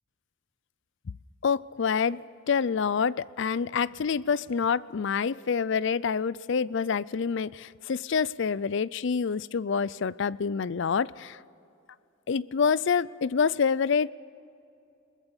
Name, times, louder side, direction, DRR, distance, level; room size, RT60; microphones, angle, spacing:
voice 1, 1.4-2.2 2.5-11.4 12.3-14.1, left 6 dB, 60° left, 20 dB, 0.4 m, -27 dB
22.0 x 20.0 x 7.1 m, 2.7 s
head